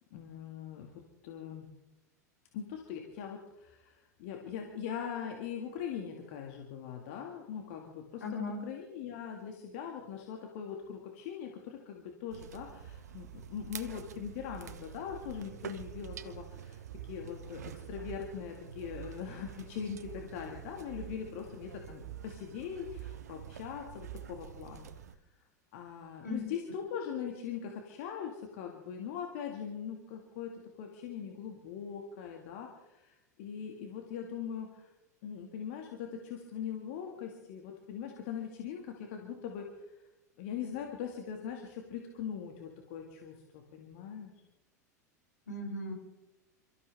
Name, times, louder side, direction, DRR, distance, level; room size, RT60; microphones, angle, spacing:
voice 1, 0.1-0.9 1.2-1.7 2.5-24.9 25.7-30.5 30.8-34.9 35.2-39.9 40.4-44.3, left 8 dB, 50° left, 2 dB, 2.0 m, -41 dB
voice 2, 8.2-8.6 26.2-26.4 45.5-45.9, left 2 dB, 75° left, 0 dB, 4.4 m, -37 dB
sound 1, 12.3-25.2, right 9 dB, 65° right, 0.8 m, -46 dB
28.0 x 13.5 x 3.6 m, 0.95 s
figure-of-eight pair, 85°, 9 cm